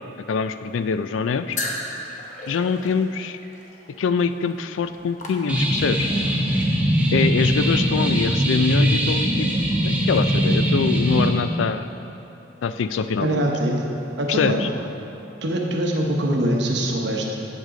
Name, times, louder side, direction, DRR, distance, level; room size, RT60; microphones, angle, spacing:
voice 1, 0.3-1.6 2.5-3.4 4.0-6.1 7.1-9.5 9.8-11.9 12.6-13.5 14.3-14.7, left 5 dB, 85° left, 11 dB, 0.4 m, -24 dB
sound 1, 1.5-6.0, left 2 dB, 40° left, 0.9 m, -35 dB
sound 2, 5.5-11.3, equal, 5° right, 0.7 m, -21 dB
voice 2, 13.2-13.8 14.2-14.7 15.4-17.5, right 1 dB, 65° right, 0 dB, 0.9 m, -23 dB
8.2 x 8.1 x 3.7 m, 2.9 s
head